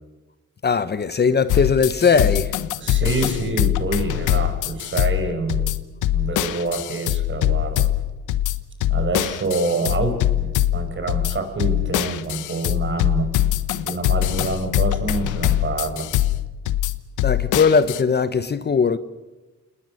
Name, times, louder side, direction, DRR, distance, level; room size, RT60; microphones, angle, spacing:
voice 1, 0.6-2.5 17.2-19.0, left 5 dB, 35° left, 1.1 m, -19 dB
sound 1, 1.5-18.0, left 13 dB, 85° left, 1.2 m, -23 dB
voice 2, 2.8-5.7 6.1-7.9 8.9-13.3 13.9-16.1, right 3 dB, 40° right, 5.8 m, -26 dB
28.5 x 20.0 x 6.6 m
cardioid pair, 90°, 30 cm